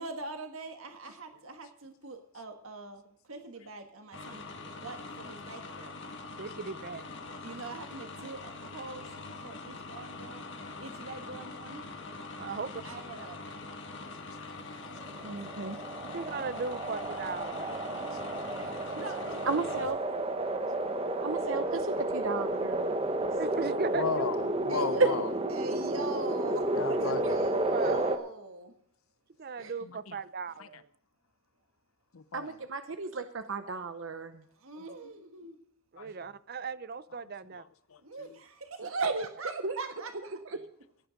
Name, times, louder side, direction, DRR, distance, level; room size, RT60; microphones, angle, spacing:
voice 1, 0.0-3.0 3.3-5.9 7.4-9.1 9.4-10.4 10.8-11.8 12.5-13.4 18.6-19.8 24.7-28.7 34.6-35.6 38.0-40.4, right 3 dB, 85° right, 1.4 m, -42 dB
sound 1, 4.1-19.9, left 3 dB, 60° left, 2.1 m, -43 dB
voice 2, 6.4-7.1 12.3-12.8 16.1-18.7 23.4-24.3 27.0-27.1 27.7-28.0 29.4-30.9 34.9-35.0 35.9-37.6, right 4 dB, 50° right, 0.6 m, -38 dB
voice 3, 14.5-14.9 15.6-16.1 18.1-18.6 23.9-25.3 26.7-27.4 29.8-30.1 30.6-30.7 32.1-32.6 33.8-33.9 34.8-34.9 36.0-36.3 37.6-38.3, left 5 dB, 90° left, 0.7 m, -37 dB
sound 2, 15.0-28.2, right 1 dB, 30° right, 1.1 m, -32 dB
voice 4, 15.2-15.8 19.5-20.0 21.2-23.0 25.0-25.1 29.6-29.7 32.3-34.3 38.8-39.2 39.6-39.7, right 4 dB, 70° right, 0.9 m, -32 dB
16.5 x 9.1 x 5.1 m
head